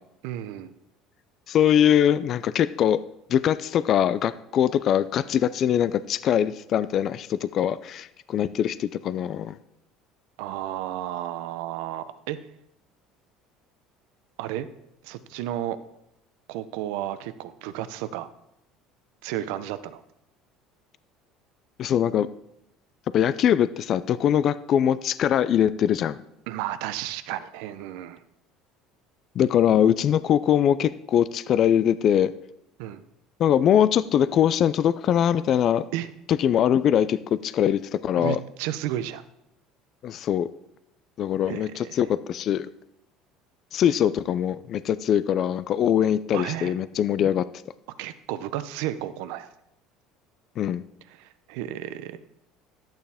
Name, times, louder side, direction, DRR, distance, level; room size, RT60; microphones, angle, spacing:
voice 1, 0.2-0.7 10.4-12.4 14.4-14.7 15.0-15.8 16.5-18.3 19.2-20.0 26.5-28.2 32.8-33.0 35.9-36.1 38.2-39.2 41.5-42.0 46.3-46.7 48.0-49.5 51.1-52.2, right 12 dB, 80° right, 13 dB, 0.6 m, -32 dB
voice 2, 1.5-3.0 3.3-9.6 21.8-22.3 23.1-26.2 29.4-32.3 33.4-35.8 36.3-38.4 40.0-40.5 41.2-42.7 43.7-47.4 50.6-50.8, left 9 dB, 50° left, 15 dB, 0.4 m, -22 dB
11.5 x 8.9 x 3.5 m, 0.82 s
supercardioid pair, 100°, 0 cm